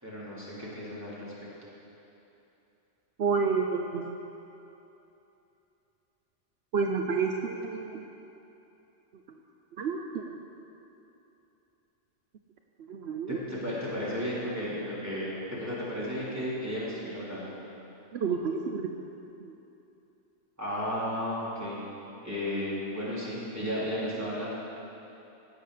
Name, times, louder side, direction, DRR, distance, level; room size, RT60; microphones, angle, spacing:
voice 1, 0.0-1.5 13.3-17.5 20.6-21.8 22.2-24.5, equal, 15° right, -9 dB, 3.8 m, -34 dB
voice 2, 3.2-4.1 6.7-8.0 9.8-10.4 12.9-13.4 18.1-18.9, right 5 dB, 75° right, 3 dB, 1.0 m, -29 dB
18.0 x 7.4 x 6.6 m, 3.0 s
omnidirectional pair, 1.1 m